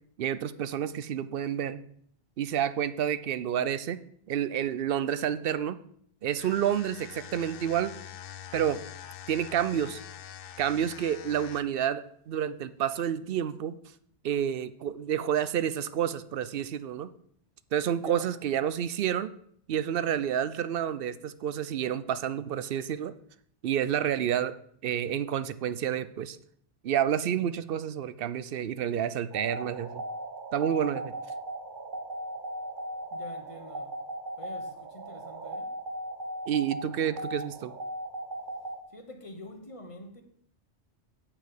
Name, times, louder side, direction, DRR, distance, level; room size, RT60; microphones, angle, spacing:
voice 1, 0.2-1.8 2.4-4.0 4.3-5.8 6.2-7.9 8.5-8.8 9.3-10.0 10.6-13.7 14.2-17.1 17.7-19.3 19.7-23.1 23.6-24.6 24.8-26.4 26.8-30.0 30.5-31.1 36.5-37.7, right 9 dB, 60° right, 0.7 m, -29 dB
sound 1, 6.3-11.9, left 10 dB, 60° left, 0.7 m, -45 dB
voice 2, 18.0-18.3 33.1-33.9 34.4-35.7 38.9-40.2, left 1 dB, 30° left, 1.1 m, -46 dB
sound 2, 29.3-38.8, right 1 dB, 45° right, 1.1 m, -38 dB
8.6 x 5.8 x 6.7 m
omnidirectional pair, 1.2 m